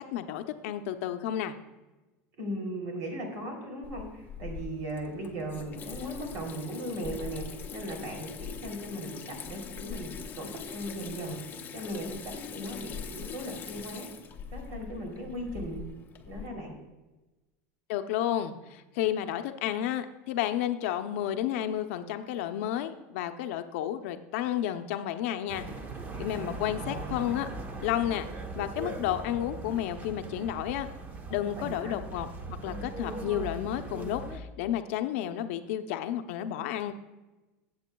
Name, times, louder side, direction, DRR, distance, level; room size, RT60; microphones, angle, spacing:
voice 1, 0.1-1.6 17.9-25.7 26.2-27.5 27.8-28.3 28.6-30.9 31.3-36.9, left 11 dB, 70° left, 8 dB, 0.6 m, -31 dB
voice 2, 2.4-7.5 7.7-11.4 11.7-14.1 14.5-15.8 16.3-16.7 26.1-27.2 31.4-32.0, right 1 dB, 45° right, 2 dB, 3.1 m, -38 dB
Water tap faucet / Sink (filling or washing), 3.8-16.5, left 7 dB, 25° left, 0.7 m, -42 dB
sound 1, 25.5-34.4, right 2 dB, 25° right, 0.9 m, -39 dB
15.0 x 8.0 x 2.3 m, 1.1 s
supercardioid pair, 150°, 7 cm